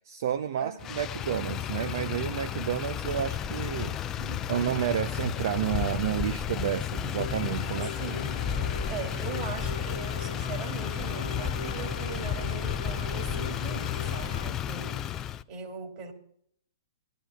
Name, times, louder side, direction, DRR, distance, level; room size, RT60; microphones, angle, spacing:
voice 1, 0.0-4.0 4.5-7.9, right 10 dB, 50° right, 12 dB, 0.6 m, -30 dB
voice 2, 0.6-0.9 4.2-4.4 7.7-8.3 8.9-15.0 15.5-16.1, right 6 dB, 35° right, 2 dB, 2.7 m, -41 dB
Motor vehicle (road), 0.8-15.4, left 9 dB, 20° left, 0.4 m, -32 dB
sound 1, 7.2-14.5, left 2 dB, 85° left, 1.4 m, -39 dB
20.5 x 12.5 x 2.3 m, 0.69 s
figure-of-eight pair, 115°, 2 cm